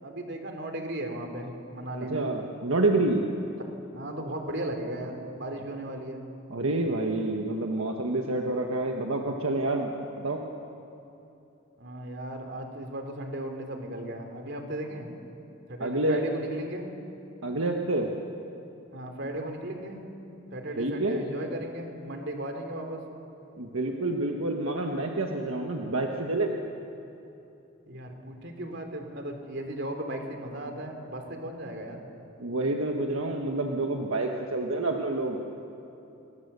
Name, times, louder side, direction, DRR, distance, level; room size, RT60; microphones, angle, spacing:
voice 1, 0.0-2.3 3.6-3.7 3.9-6.2 11.8-15.1 15.7-16.9 18.9-20.0 20.5-23.0 27.9-32.0, right 1 dB, 55° right, 4 dB, 3.2 m, -36 dB
voice 2, 2.1-3.3 6.5-10.4 15.8-16.2 17.4-18.1 20.8-21.2 23.6-26.5 32.4-35.5, right 2 dB, 80° right, 2 dB, 1.5 m, -28 dB
29.0 x 22.0 x 6.9 m, 2.9 s
head